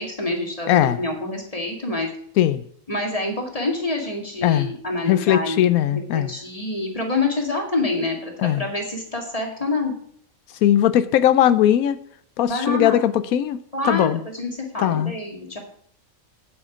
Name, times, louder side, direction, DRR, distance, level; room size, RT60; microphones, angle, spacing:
voice 1, 0.0-2.1 2.9-5.7 5.9-9.9 12.5-13.0 13.7-15.6, left 2 dB, 25° left, 1 dB, 2.3 m, -27 dB
voice 2, 0.7-1.0 2.4-2.6 4.4-4.7 5.1-6.3 8.4-8.7 10.6-12.0 12.4-13.6 13.8-14.2 14.8-15.1, left 11 dB, 90° left, 13 dB, 1.1 m, -19 dB
9.1 x 8.4 x 4.9 m, 0.63 s
omnidirectional pair, 1.4 m